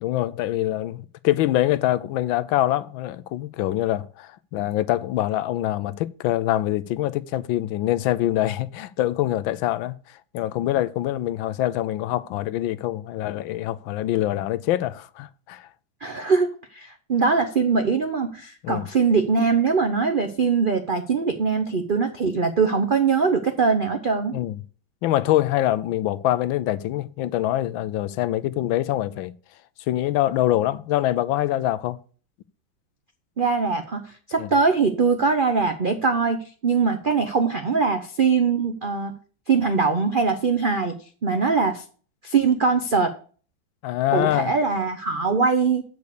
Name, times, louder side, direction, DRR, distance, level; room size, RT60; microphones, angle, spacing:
voice 1, 0.0-10.0 10.3-15.7 18.6-18.9 24.3-24.6 25.0-29.3 29.9-32.0 34.4-34.5 43.8-44.5, left 14 dB, 85° left, 1.4 m, -24 dB
voice 2, 16.0-24.3 33.4-34.0 34.3-39.1 39.5-40.9 41.2-41.8 42.2-43.1 44.1-45.8, right 5 dB, 70° right, 0.5 m, -22 dB
8.3 x 5.3 x 6.6 m
omnidirectional pair, 2.1 m